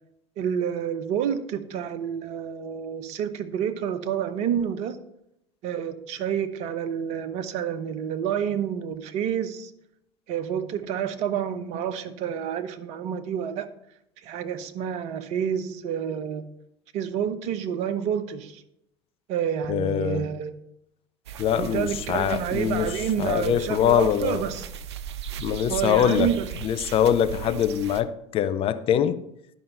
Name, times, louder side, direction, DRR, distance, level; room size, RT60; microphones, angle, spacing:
voice 1, 0.4-5.0 5.6-9.7 10.3-13.7 14.2-16.4 16.9-18.6 19.3-20.5 21.3-24.7 25.7-26.4, right 8 dB, 50° right, 10 dB, 0.9 m, -29 dB
voice 2, 19.7-20.3 21.4-22.9 23.2-24.4 25.4-26.3 26.6-29.2, left 9 dB, 40° left, 12 dB, 0.7 m, -23 dB
sound 1, 21.3-28.0, right 9 dB, 70° right, 0.6 m, -37 dB
11.0 x 5.5 x 5.4 m, 0.80 s
figure-of-eight pair, 70°, 15 cm